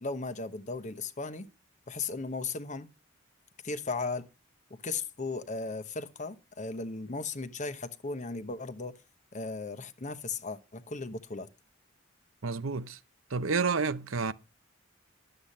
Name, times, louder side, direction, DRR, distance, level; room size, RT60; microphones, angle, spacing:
voice 1, 0.0-1.5 1.9-2.9 3.6-4.3 4.7-8.9 9.3-11.5, left 3 dB, 40° left, 1.0 m, -36 dB
voice 2, 12.4-13.0 13.3-14.3, right 4 dB, 85° right, 0.8 m, -29 dB
12.0 x 7.9 x 5.3 m
head